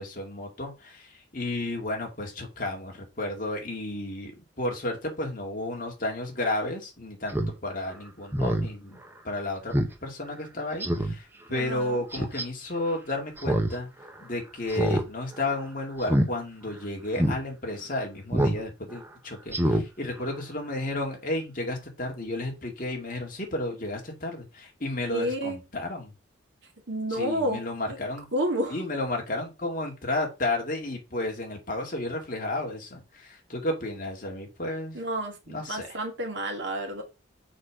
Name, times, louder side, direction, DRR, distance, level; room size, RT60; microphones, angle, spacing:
voice 1, 0.0-7.4 7.6-9.0 9.2-9.7 10.0-13.9 14.2-26.1 27.1-28.3 28.7-35.0 35.5-36.0, left 2 dB, 40° left, 2.1 m, -32 dB
Speech synthesizer, 7.3-7.5 7.9-8.0 8.3-8.7 9.1-9.2 9.7-9.9 10.3-10.4 10.8-11.1 12.1-12.4 13.4-13.7 14.0-14.1 14.7-15.0 15.3-15.6 16.0-16.3 16.7-16.8 17.2-17.4 18.3-18.6 18.9-19.1 19.5-19.8 20.2-20.3, right 1 dB, 10° right, 0.8 m, -25 dB
voice 2, 11.5-12.0 25.1-25.6 26.9-27.6 28.3-28.8 34.9-37.0, equal, 60° right, 2.1 m, -30 dB
6.5 x 4.9 x 4.9 m
head